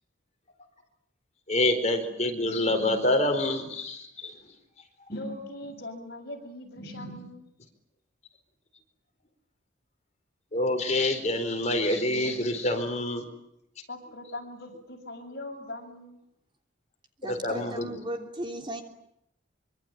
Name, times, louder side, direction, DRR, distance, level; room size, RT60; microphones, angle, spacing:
voice 1, 1.5-4.3 5.1-5.2 6.8-7.3 10.5-13.2 17.3-18.0, left 1 dB, 35° left, 5 dB, 4.5 m, -27 dB
voice 2, 5.1-7.5 13.9-16.2, left 1 dB, 55° left, 2 dB, 7.3 m, -41 dB
voice 3, 17.2-18.8, right 1 dB, 25° right, 4 dB, 3.2 m, -36 dB
25.0 x 25.0 x 9.3 m, 0.78 s
head